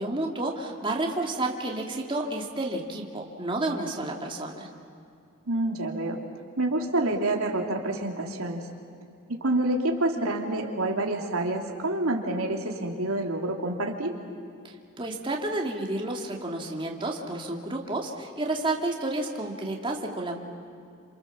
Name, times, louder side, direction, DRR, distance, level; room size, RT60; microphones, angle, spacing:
voice 1, 0.0-4.7 14.6-20.4, right 2 dB, 25° right, 0 dB, 2.5 m, -31 dB
voice 2, 5.5-6.2 6.6-8.7 9.3-14.2, right 2 dB, 90° right, 1 dB, 3.0 m, -27 dB
29.5 x 27.5 x 7.3 m, 2.5 s
head